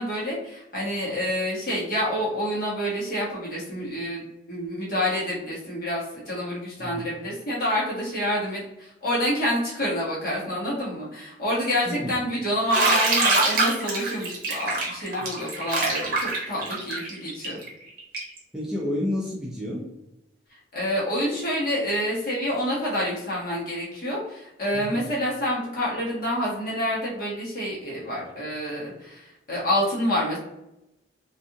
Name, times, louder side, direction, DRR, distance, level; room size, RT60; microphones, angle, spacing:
voice 1, 0.0-4.2 4.5-17.6 20.5-30.4, equal, 50° left, -6 dB, 1.1 m, -28 dB
voice 2, 6.8-7.1 11.9-12.2 18.5-19.9 24.7-25.0, left 1 dB, 5° right, -6 dB, 0.4 m, -30 dB
Bathtub (filling or washing), 12.7-18.4, right 2 dB, 50° right, 0.8 m, -24 dB
2.5 x 2.4 x 2.8 m, 0.89 s
head